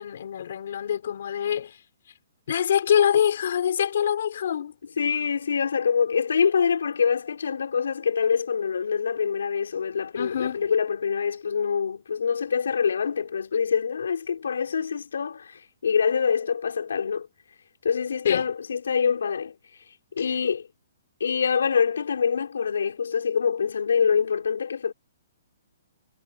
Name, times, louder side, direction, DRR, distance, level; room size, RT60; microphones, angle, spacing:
voice 1, 0.0-1.8 2.5-4.7 10.1-10.6 18.2-18.5 20.2-20.3, left 9 dB, 50° left, 6.1 m, -25 dB
voice 2, 5.0-15.5 15.8-17.3 17.8-19.5 20.2-20.7 21.2-24.9, left 6 dB, 85° left, 5.8 m, -25 dB
hypercardioid pair, 175°, 0 cm